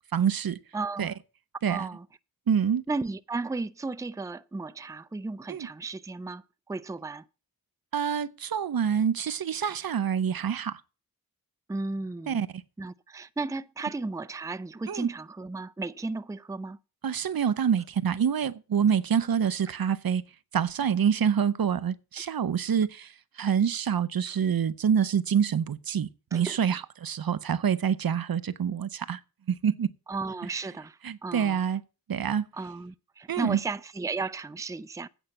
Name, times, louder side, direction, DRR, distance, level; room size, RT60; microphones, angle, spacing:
voice 1, 0.1-0.6 1.0-1.1 1.6-1.9 2.5-2.8 5.5-5.7 7.9-10.8 12.3-12.6 14.9-15.1 17.0-20.2 20.5-29.2 29.5-29.9 31.0-31.8 32.1-32.5 33.3-33.6, right 8 dB, 70° right, 0.7 m, -26 dB
voice 2, 0.7-1.1 1.7-2.0 2.9-7.2 11.7-12.4 12.8-16.8 26.3-26.6 30.1-31.6 32.5-35.1, right 3 dB, 10° right, 0.5 m, -34 dB
8.9 x 5.5 x 7.2 m
cardioid pair, 50°, 37 cm